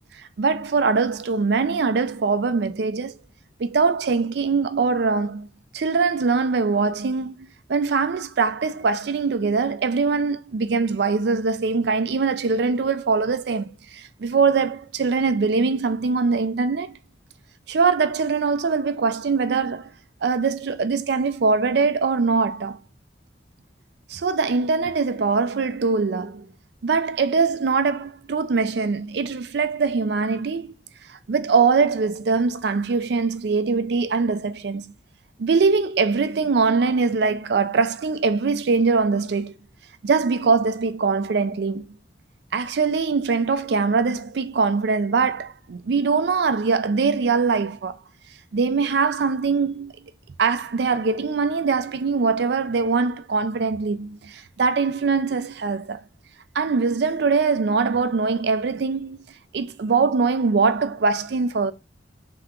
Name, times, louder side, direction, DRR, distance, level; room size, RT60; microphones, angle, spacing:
voice 1, 0.2-3.2 3.6-5.5 5.7-17.0 17.7-19.9 20.2-22.8 24.1-26.5 26.8-30.7 31.1-34.9 35.4-39.5 40.0-41.9 42.5-48.0 48.5-49.9 50.4-56.0 56.5-59.2 59.5-61.7, right 4 dB, 65° right, 0.4 m, -22 dB
3.4 x 2.9 x 3.6 m
head